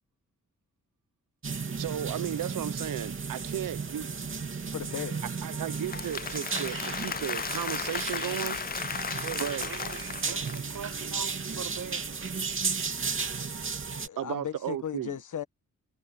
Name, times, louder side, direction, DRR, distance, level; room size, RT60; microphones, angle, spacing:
sound 1, 1.4-14.1, right 5 dB, 40° right, 2.7 m, -34 dB
voice 1, 1.8-4.1 5.4-8.6 9.3-9.7 14.2-15.2, right 11 dB, 85° right, 0.8 m, -34 dB
voice 2, 4.7-5.4 14.0-15.4, left 9 dB, 70° left, 1.4 m, -36 dB
Applause / Crowd, 5.6-10.9, left 7 dB, 30° left, 0.4 m, -35 dB
voice 3, 9.2-12.0, right 8 dB, 65° right, 1.4 m, -42 dB
wide cardioid pair, 135°, 32 cm